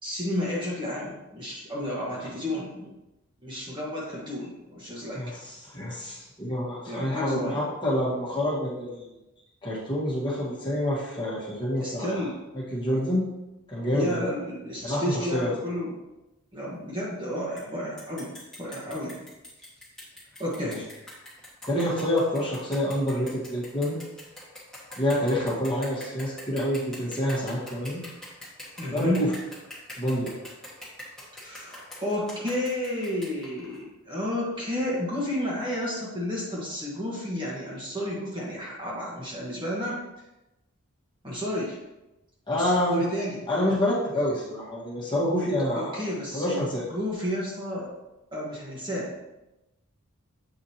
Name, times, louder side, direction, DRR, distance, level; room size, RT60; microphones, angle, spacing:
voice 1, 0.0-2.9 3.4-5.2 6.9-7.6 11.8-12.4 13.9-15.9 16.5-18.3 18.6-19.2 20.4-20.8 28.8-29.3 31.4-40.0 41.2-41.8 42.5-43.4 45.7-46.6 46.9-47.9 48.3-49.1, left 1 dB, 20° right, -5 dB, 1.2 m, -31 dB
voice 2, 5.1-9.1 9.6-12.2 12.5-13.3 13.7-14.3 14.8-15.5 18.9-19.0 20.6-20.8 21.7-24.0 25.0-28.0 28.9-29.3 30.0-30.3 42.5-43.0 43.5-45.9 46.3-46.8, left 1 dB, 20° left, -7 dB, 1.6 m, -27 dB
sound 1, 17.6-17.7 18.0-33.8, left 1 dB, 5° left, 1.5 m, -44 dB
7.9 x 4.8 x 2.9 m, 0.98 s
head